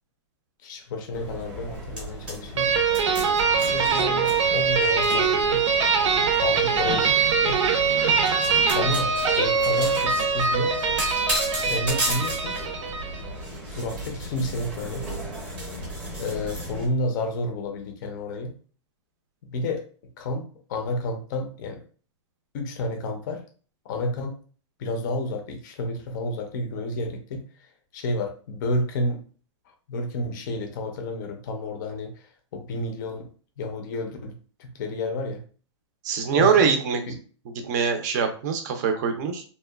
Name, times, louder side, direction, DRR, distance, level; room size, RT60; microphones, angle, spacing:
voice 1, 0.6-2.7 3.6-5.6 6.4-7.6 8.7-10.9 11.6-12.6 13.7-15.1 16.2-18.5 19.5-19.9 20.2-21.8 22.5-23.4 23.8-24.4 24.8-27.4 27.9-29.2 29.9-32.2 32.5-33.3 33.6-35.4 36.3-36.7 37.1-37.2, left 1 dB, 40° left, 4 dB, 0.5 m, -30 dB
sound 1, 1.1-16.9, right 1 dB, 5° right, 0.7 m, -34 dB
sound 2, 2.6-13.3, right 5 dB, 90° right, 0.6 m, -23 dB
voice 2, 36.0-37.0 37.5-39.4, right 6 dB, 35° right, 5 dB, 0.5 m, -23 dB
2.8 x 2.2 x 2.2 m, 0.40 s
hypercardioid pair, 160°, 15 cm